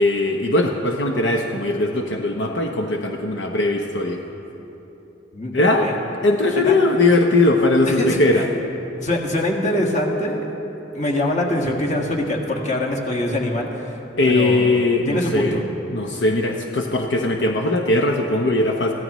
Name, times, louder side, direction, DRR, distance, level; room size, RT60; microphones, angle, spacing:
voice 1, 0.0-4.2 5.5-5.9 6.2-8.5 14.2-15.6 15.9-18.9, left 2 dB, 75° left, 2 dB, 0.9 m, -19 dB
voice 2, 7.9-8.4 9.0-10.5 10.9-14.0 14.3-14.7 15.1-15.6, left 1 dB, 40° left, -1 dB, 1.8 m, -23 dB
24.0 x 15.5 x 3.1 m, 3.0 s
head